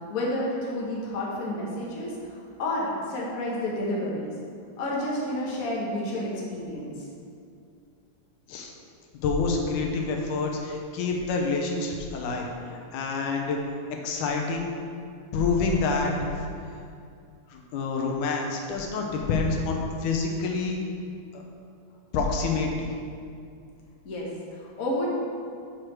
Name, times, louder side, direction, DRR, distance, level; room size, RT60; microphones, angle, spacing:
voice 1, 0.0-4.3 4.8-7.1 24.0-25.2, left 1 dB, 50° left, -5 dB, 1.0 m, -30 dB
voice 2, 9.2-13.6 13.9-14.7 15.3-16.3 17.5-20.8 21.3-21.4 22.1-22.9, left 4 dB, 85° left, 1 dB, 2.3 m, -27 dB
6.0 x 5.0 x 6.1 m, 2.4 s
omnidirectional pair, 3.5 m